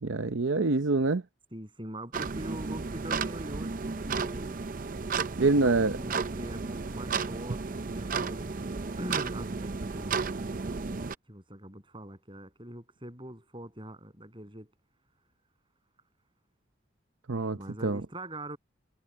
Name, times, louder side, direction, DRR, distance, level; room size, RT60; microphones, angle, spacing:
voice 1, 0.0-1.2 5.4-5.9 17.3-18.0, right 3 dB, 75° right, 0.8 m, -25 dB
voice 2, 1.5-4.6 5.6-7.6 7.9-8.7 9.0-10.3 11.3-14.7 17.5-18.6, right 1 dB, 25° right, 8.0 m, -42 dB
sound 1, 2.1-11.2, right 4 dB, 45° right, 0.6 m, -33 dB
head